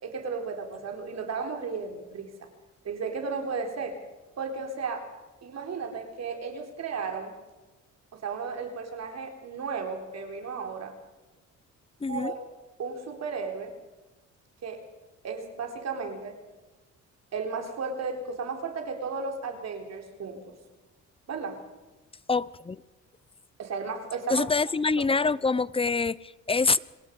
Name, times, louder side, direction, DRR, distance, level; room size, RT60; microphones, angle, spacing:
voice 1, 0.0-2.5 2.8-4.0 4.4-5.1 5.4-7.3 8.1-10.9 12.1-12.5 12.8-13.7 14.6-14.8 15.2-16.4 17.3-20.5 21.3-21.6 23.6-24.5, right 5 dB, 60° right, 4 dB, 4.0 m, -34 dB
voice 2, 12.0-12.3 22.3-22.8 24.3-26.8, left 4 dB, 20° left, 20 dB, 0.7 m, -25 dB
26.0 x 19.0 x 5.4 m, 1.1 s
cardioid pair, 90°, 30 cm